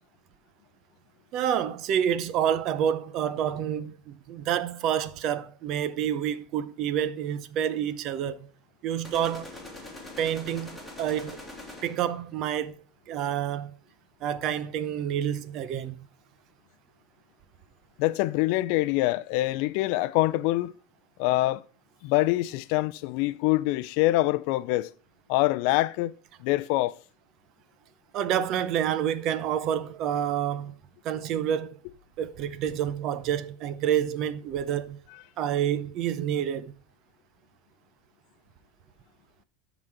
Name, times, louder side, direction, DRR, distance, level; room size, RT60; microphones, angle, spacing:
voice 1, 1.3-8.5 8.8-9.5 10.2-11.4 11.8-13.7 14.2-16.1 28.1-30.7 31.0-31.8 32.2-35.0 35.4-36.7, right 9 dB, 45° right, 0.7 m, -28 dB
sound 1, 9.0-12.2, left 2 dB, ahead, 2.6 m, -43 dB
voice 2, 18.0-20.7 21.2-21.6 22.0-24.9 25.3-26.1 26.4-26.9, left 18 dB, 60° left, 0.4 m, -25 dB
12.0 x 4.0 x 4.7 m
supercardioid pair, 130°, 0 cm